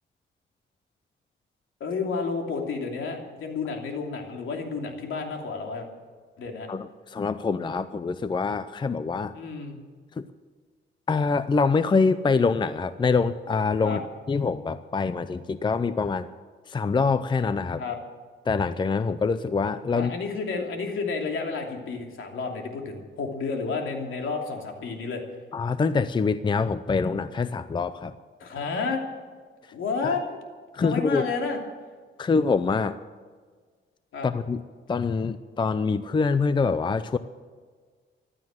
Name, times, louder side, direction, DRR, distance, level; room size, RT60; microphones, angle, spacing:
voice 1, 1.8-5.9 6.4-6.7 9.3-9.8 13.8-14.0 17.8-18.0 19.9-25.2 28.4-29.0 29.7-30.4 30.8-31.6 34.1-34.3, left 4 dB, 75° left, 2 dB, 2.9 m, -31 dB
voice 2, 6.7-9.3 10.2-10.3 11.1-14.0 14.3-16.3 16.7-17.8 18.5-20.1 25.5-28.1 30.0-30.2 30.7-31.3 32.2-33.0 34.2-34.6 34.9-37.2, left 4 dB, 25° left, 13 dB, 0.5 m, -25 dB
15.5 x 12.5 x 7.6 m, 1.5 s
cardioid pair, 130°, 21 cm